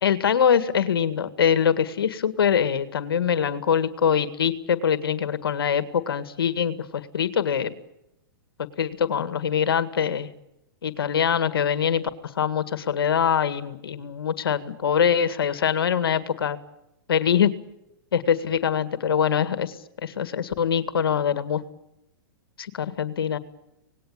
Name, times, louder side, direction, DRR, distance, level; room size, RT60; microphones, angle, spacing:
voice 1, 0.0-6.7 7.1-7.7 8.8-10.3 10.8-12.0 12.4-16.6 17.1-17.5 18.1-19.8 20.0-21.6 22.6-23.4, left 8 dB, 85° left, 12 dB, 1.9 m, -23 dB
26.0 x 19.5 x 8.7 m, 0.84 s
hypercardioid pair, 130°, 12 cm